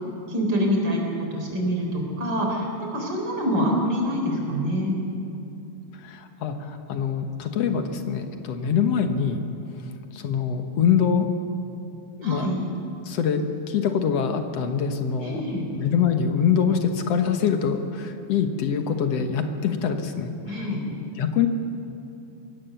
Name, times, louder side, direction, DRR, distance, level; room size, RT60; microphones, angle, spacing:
voice 1, 0.3-5.0 12.2-12.6 15.2-15.6 20.5-20.8, equal, 35° right, 0 dB, 4.7 m, -25 dB
voice 2, 6.0-9.5 10.1-11.3 12.2-12.5 13.1-15.4 15.7-20.7 21.2-21.5, left 7 dB, 65° left, 6 dB, 2.2 m, -24 dB
23.5 x 17.0 x 6.9 m, 2.7 s
omnidirectional pair, 3.3 m